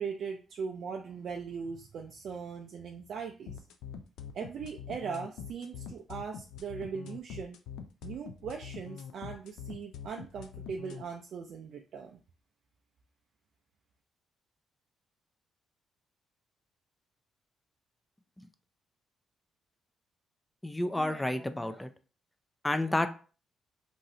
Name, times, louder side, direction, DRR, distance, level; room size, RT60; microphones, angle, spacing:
voice 1, 0.0-3.5 4.3-7.6 8.0-12.2, right 6 dB, 65° right, 2 dB, 0.4 m, -39 dB
sound 1, 3.5-11.0, left 7 dB, 85° left, 0.4 m, -44 dB
voice 2, 20.6-21.9 22.6-23.1, left 1 dB, 10° left, 10 dB, 0.4 m, -30 dB
3.0 x 2.5 x 2.7 m, 0.37 s
cardioid pair, 90°, 0 cm